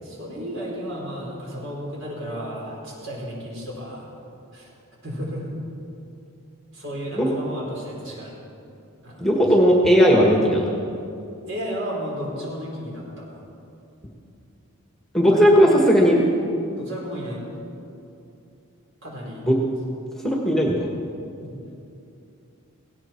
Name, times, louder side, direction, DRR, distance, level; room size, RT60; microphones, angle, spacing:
voice 1, 0.0-4.1 4.5-4.7 5.0-5.5 6.7-8.3 9.0-9.2 11.5-13.4 15.3-15.5 16.8-17.4 19.0-19.4 21.4-21.7, equal, 60° right, -3 dB, 4.7 m, -33 dB
voice 2, 9.2-10.7 15.1-16.2 19.4-19.5 20.2-20.9, equal, ahead, -1 dB, 1.5 m, -17 dB
18.0 x 17.0 x 4.5 m, 2.7 s
head